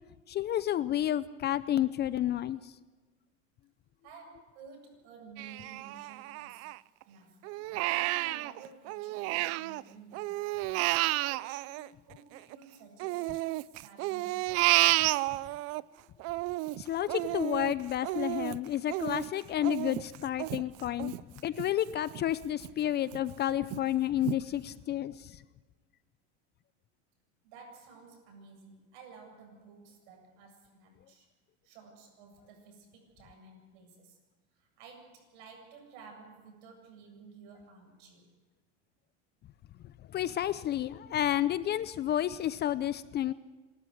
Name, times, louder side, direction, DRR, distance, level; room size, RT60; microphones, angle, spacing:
voice 1, 0.3-2.7 16.8-21.1 21.4-25.4 40.1-43.3, left 12 dB, 30° left, 16 dB, 0.6 m, -31 dB
voice 2, 4.0-6.7 7.0-7.5 7.8-10.6 10.9-14.5 27.4-31.3 31.6-34.2 34.5-38.3, right 4 dB, 65° right, 4 dB, 7.7 m, -53 dB
Crying sobbing, 5.4-7.0 7.4-9.8 10.1-12.6 13.0-15.8 16.2-21.7 22.1-22.2 22.6-23.2 23.7-23.8 24.2-24.4, right 20 dB, 45° right, 0.5 m, -31 dB
27.5 x 13.0 x 8.0 m, 1.3 s
supercardioid pair, 120°, 35 cm